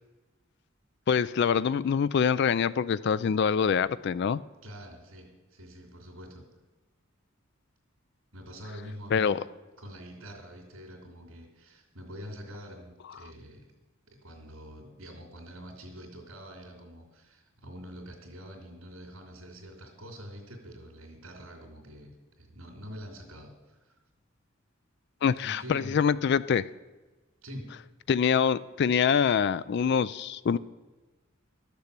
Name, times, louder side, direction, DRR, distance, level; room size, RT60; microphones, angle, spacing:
voice 1, 1.1-4.4 9.1-9.4 25.2-26.6 28.1-30.6, left 7 dB, 55° left, 17 dB, 0.3 m, -25 dB
voice 2, 4.6-6.4 8.3-9.4 9.8-13.7 14.1-23.9 25.4-26.0 27.4-27.7, equal, 90° right, 0 dB, 2.7 m, -45 dB
12.5 x 6.9 x 8.2 m, 1.2 s
head